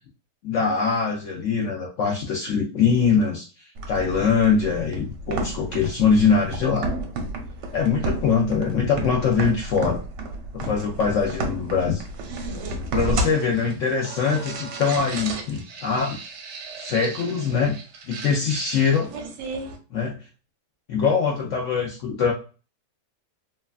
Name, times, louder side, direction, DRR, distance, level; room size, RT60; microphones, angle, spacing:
voice 1, 0.4-6.9 7.7-10.0 10.5-12.0 12.9-16.2 16.8-17.8 18.1-19.1 19.9-20.1 20.9-22.3, left 5 dB, 75° left, -1 dB, 0.7 m, -23 dB
sound 1, 3.7-19.8, right 2 dB, 80° right, 1.2 m, -32 dB
3.1 x 2.3 x 2.3 m, 0.35 s
omnidirectional pair, 1.9 m